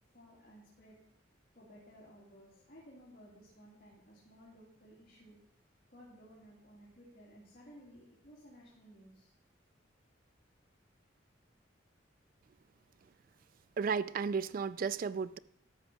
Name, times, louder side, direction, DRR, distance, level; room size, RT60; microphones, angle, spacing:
voice 1, 0.1-1.0 1.5-5.4 5.9-9.3, equal, 50° left, 2.6 m, -57 dB
voice 2, 13.8-15.4, right 5 dB, 45° right, 0.3 m, -33 dB
13.5 x 4.8 x 6.1 m
head